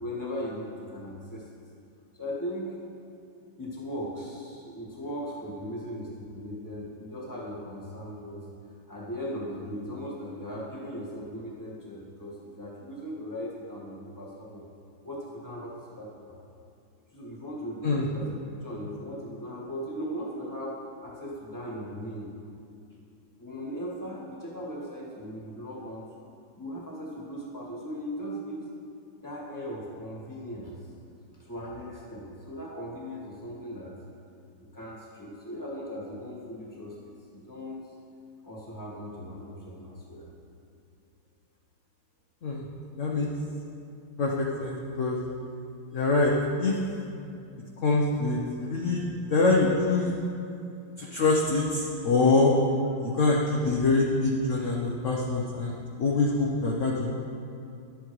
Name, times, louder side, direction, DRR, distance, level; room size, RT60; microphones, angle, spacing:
voice 1, 0.0-1.6 2.2-2.8 3.6-8.4 8.9-14.7 15.0-16.4 17.1-22.3 23.4-26.1 26.6-28.6 29.2-30.8 31.3-33.9 34.7-37.9 38.4-40.3, equal, 10° left, -5 dB, 1.4 m, -38 dB
voice 2, 43.0-43.3 44.2-45.2 45.9-46.3 46.6-46.8 47.8-49.0 49.3-50.1 51.0-52.5 53.0-57.1, left 3 dB, 55° left, -3 dB, 0.8 m, -25 dB
12.0 x 8.4 x 3.1 m, 2.5 s
omnidirectional pair, 2.2 m